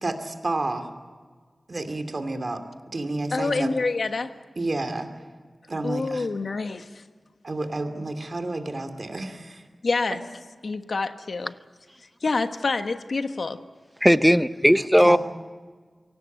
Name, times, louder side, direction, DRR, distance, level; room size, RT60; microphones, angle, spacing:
voice 1, 0.0-0.9 1.7-2.6 2.9-3.7 4.6-5.1 5.7-6.3 7.4-9.6 15.0-15.2, right 2 dB, 45° right, 2.5 m, -30 dB
voice 2, 3.3-4.3 5.8-7.0 9.8-10.2 10.6-11.5 12.2-13.6, left 3 dB, 65° left, 1.3 m, -27 dB
voice 3, 14.0-15.2, equal, ahead, 0.7 m, -17 dB
24.0 x 17.5 x 9.2 m
wide cardioid pair, 105°, 0 cm